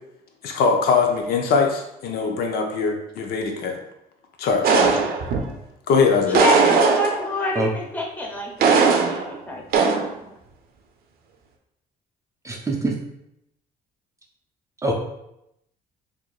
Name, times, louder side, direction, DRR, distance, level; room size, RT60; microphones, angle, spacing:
voice 1, 0.4-3.8 4.4-5.0 5.9-6.4, left 5 dB, 65° left, 3 dB, 0.6 m, -21 dB
sound 1, 4.6-5.5 6.3-7.4 8.6-9.3 9.7-10.1, right 5 dB, 65° right, 0.6 m, -18 dB
voice 2, 6.3-9.6, equal, 10° left, -2 dB, 0.9 m, -26 dB
voice 3, 12.4-12.9 14.8-14.9, right 2 dB, 20° right, 0 dB, 0.5 m, -23 dB
4.4 x 2.6 x 2.4 m, 0.81 s
cardioid pair, 110°, 17 cm